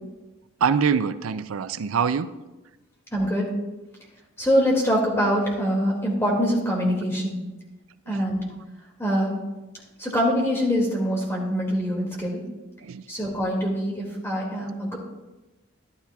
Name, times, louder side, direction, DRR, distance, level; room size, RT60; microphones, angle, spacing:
voice 1, 0.6-2.3 8.1-8.2 12.8-13.0, right 6 dB, 85° right, 12 dB, 0.4 m, -24 dB
voice 2, 3.1-3.5 4.4-7.4 8.1-8.5 9.0-9.3 10.0-12.4 13.1-15.0, equal, 10° left, -2 dB, 2.2 m, -24 dB
12.0 x 11.5 x 2.3 m, 1.1 s
head